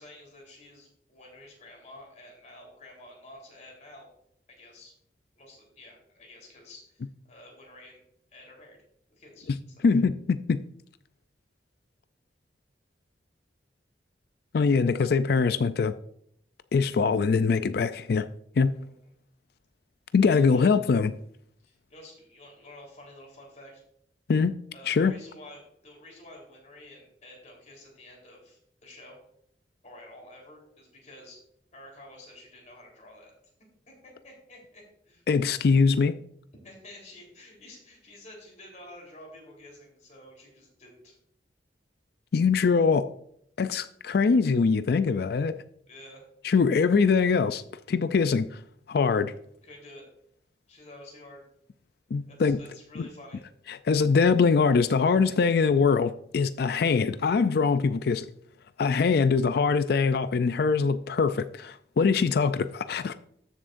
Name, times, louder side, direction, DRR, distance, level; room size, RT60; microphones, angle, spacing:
voice 1, 0.0-4.1 4.6-4.9 5.4-8.0 8.3-8.8 9.1-9.5 15.0-15.1 18.8-18.9 20.2-20.7 21.6-23.8 24.7-29.2 29.8-31.4 31.7-33.3 33.9-35.2 36.6-41.1 45.9-46.2 49.6-50.0 50.7-51.5 52.3-53.4, left 1 dB, 40° left, 3.7 m, -50 dB
voice 2, 9.8-10.6 14.5-15.9 16.7-18.3 18.6-18.8 20.1-21.1 24.3-24.5 24.9-25.1 35.3-36.1 42.3-43.1 43.6-45.5 46.4-47.6 47.9-48.6 48.9-49.3 52.1-52.6 53.0-53.1 53.7-58.3 58.8-63.1, left 5 dB, 60° left, 0.4 m, -23 dB
13.0 x 7.3 x 2.6 m
head